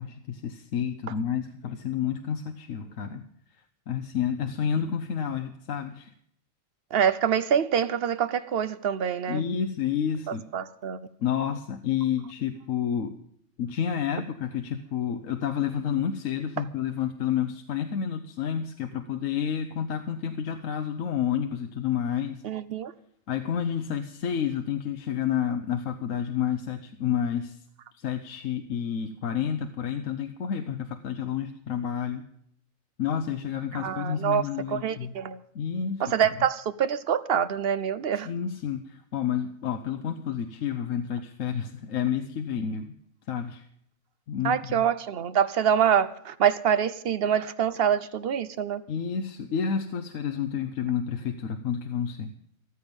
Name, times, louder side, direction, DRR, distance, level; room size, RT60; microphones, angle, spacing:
voice 1, 0.0-3.2 3.9-6.1 9.3-10.5 11.2-13.1 13.6-22.4 23.3-27.6 27.9-32.3 33.0-35.2 35.5-36.2 38.1-42.9 43.3-43.7 44.3-44.8 48.9-52.3, left 8 dB, 75° left, 7 dB, 1.2 m, -30 dB
voice 2, 6.9-9.4 10.5-11.0 22.4-22.9 33.7-34.4 34.7-35.4 36.0-38.3 44.4-48.8, right 8 dB, 55° right, 14 dB, 0.9 m, -25 dB
14.0 x 13.5 x 5.3 m, 0.68 s
omnidirectional pair, 1.4 m